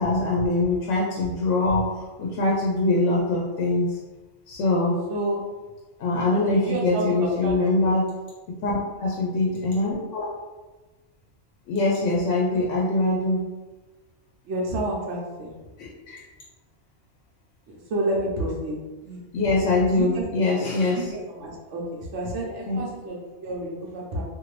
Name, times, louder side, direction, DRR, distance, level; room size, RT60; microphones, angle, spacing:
voice 1, 0.0-4.0 4.5-5.0 6.0-8.0 8.6-10.2 11.7-13.4 15.8-16.2 19.3-21.1 22.7-22.9, left 2 dB, 90° left, -4 dB, 0.9 m, -23 dB
voice 2, 5.1-5.4 6.6-7.9 14.4-15.5 17.7-18.7 19.0-19.2 19.9-20.2 20.9-24.2, right 1 dB, 75° right, -3 dB, 1.0 m, -30 dB
2.6 x 2.6 x 3.1 m, 1.2 s
omnidirectional pair, 1.2 m